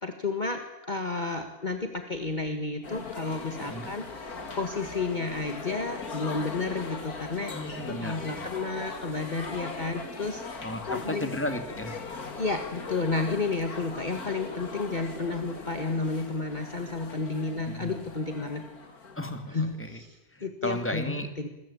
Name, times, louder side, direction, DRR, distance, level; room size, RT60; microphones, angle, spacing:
voice 1, 0.0-0.6 0.9-11.3 12.4-18.6 19.5-21.5, left 3 dB, 30° left, 6 dB, 1.9 m, -32 dB
sound 1, 2.8-19.7, left 4 dB, 80° left, 2.8 m, -40 dB
voice 2, 3.6-3.9 7.5-8.5 10.6-12.0 17.7-18.0 19.2-20.0 20.3-21.3, left 1 dB, 10° left, 8 dB, 2.6 m, -34 dB
26.5 x 20.5 x 8.8 m, 1.0 s
omnidirectional pair, 1.6 m